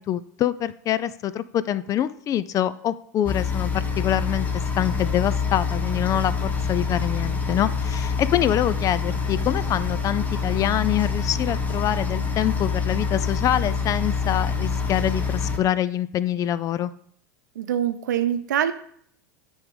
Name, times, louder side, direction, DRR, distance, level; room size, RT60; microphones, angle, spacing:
voice 1, 0.0-4.5 4.8-16.9, left 11 dB, 35° left, 16 dB, 0.4 m, -25 dB
sound 1, 3.3-15.6, left 5 dB, 15° left, 1.3 m, -26 dB
voice 2, 17.5-18.7, right 10 dB, 75° right, 10 dB, 0.7 m, -24 dB
9.8 x 3.7 x 5.2 m, 0.65 s
hypercardioid pair, 90°, 10 cm